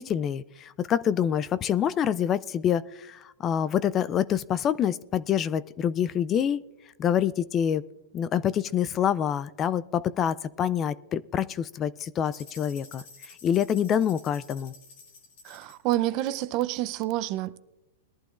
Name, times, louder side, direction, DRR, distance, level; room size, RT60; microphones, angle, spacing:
voice 1, 0.0-6.6 7.0-7.8 8.1-14.7, left 9 dB, 25° left, 0.4 m, -26 dB
sound 1, 12.2-15.9, left 4 dB, 60° left, 3.4 m, -50 dB
voice 2, 15.4-17.6, right 15 dB, 40° right, 0.6 m, -28 dB
21.5 x 11.5 x 2.5 m
hypercardioid pair, 140°, 0 cm